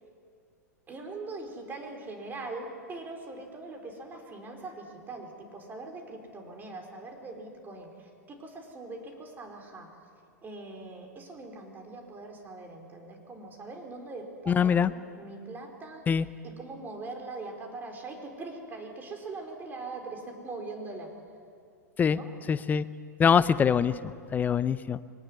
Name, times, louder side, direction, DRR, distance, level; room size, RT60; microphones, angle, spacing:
voice 1, 0.9-9.9 10.4-16.0 16.4-21.1 22.1-22.3, right 3 dB, 20° right, 3 dB, 4.8 m, -42 dB
voice 2, 14.5-14.9 16.1-16.3 22.0-22.2 22.5-22.8 23.2-23.9 24.3-25.0, left 7 dB, 20° left, 16 dB, 0.7 m, -23 dB
23.0 x 19.0 x 9.8 m, 2.2 s
figure-of-eight pair, 100°, 9 cm